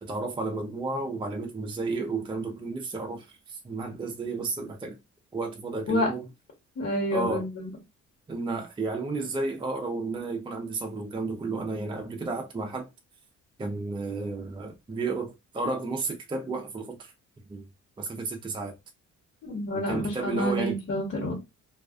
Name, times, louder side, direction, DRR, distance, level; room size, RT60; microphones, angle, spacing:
voice 1, 0.0-5.0 5.3-6.3 7.1-7.5 8.3-12.9 13.6-17.1 17.5-17.7 18.0-18.7 19.7-20.8, right 3 dB, 15° right, 0.4 m, -32 dB
voice 2, 6.8-7.7 19.4-21.4, left 1 dB, 50° left, 1.2 m, -28 dB
2.3 x 2.3 x 2.3 m
cardioid pair, 90°, 30 cm